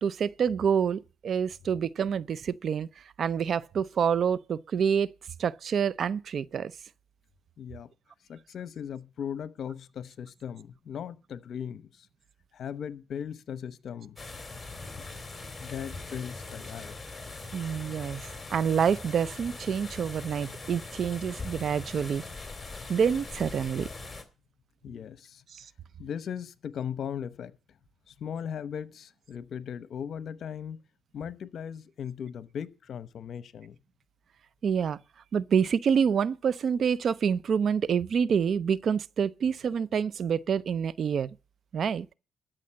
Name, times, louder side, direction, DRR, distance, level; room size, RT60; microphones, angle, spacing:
voice 1, 0.0-2.9 3.2-5.1 5.4-6.7 17.5-18.2 18.5-22.2 22.9-23.9 25.5-25.6 34.6-35.0 35.3-41.3 41.7-42.1, right 7 dB, 55° right, 0.6 m, -27 dB
voice 2, 7.6-7.9 8.3-12.1 12.5-14.2 15.6-16.9 24.8-25.4 26.0-27.6 28.1-30.8 31.1-33.8, left 8 dB, 60° left, 0.9 m, -38 dB
sound 1, 14.2-24.2, left 3 dB, 15° left, 2.9 m, -41 dB
13.0 x 6.2 x 7.6 m
cardioid pair, 90°, 0 cm